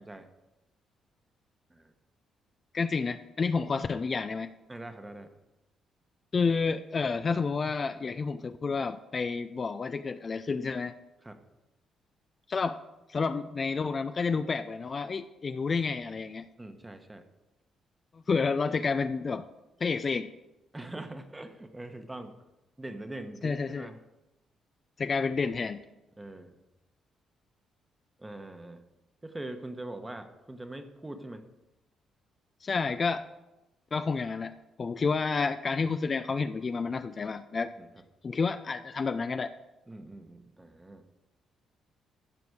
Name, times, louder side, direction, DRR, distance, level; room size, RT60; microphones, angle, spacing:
voice 1, 2.7-4.5 6.3-10.9 12.5-12.8 13.1-16.5 18.1-19.5 19.8-20.3 23.4-23.9 25.0-25.8 32.6-33.2 33.9-37.7 38.2-39.6, left 4 dB, 40° left, 11 dB, 0.4 m, -30 dB
voice 2, 4.7-5.3 11.2-11.4 16.6-17.2 20.7-22.4 22.8-24.0 26.2-26.5 28.2-28.8 29.2-31.4 35.0-35.1 37.8-37.9 39.9-41.1, right 1 dB, 15° right, 7 dB, 1.1 m, -42 dB
14.5 x 5.2 x 4.8 m, 0.96 s
cardioid pair, 90°, 0 cm